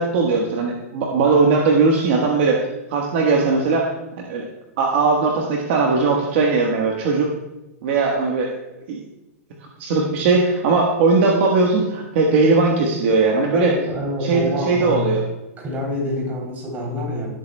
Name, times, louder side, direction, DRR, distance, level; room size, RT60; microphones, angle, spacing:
voice 1, 0.0-3.9 4.2-4.4 4.8-7.3 7.8-8.5 8.9-9.0 9.8-13.7 14.2-15.2, right 4 dB, 50° right, -1 dB, 1.3 m, -19 dB
voice 2, 13.5-15.1 15.6-17.3, left 1 dB, 20° right, -1 dB, 3.1 m, -26 dB
17.0 x 8.3 x 2.2 m, 1.0 s
supercardioid pair, 160°, 8 cm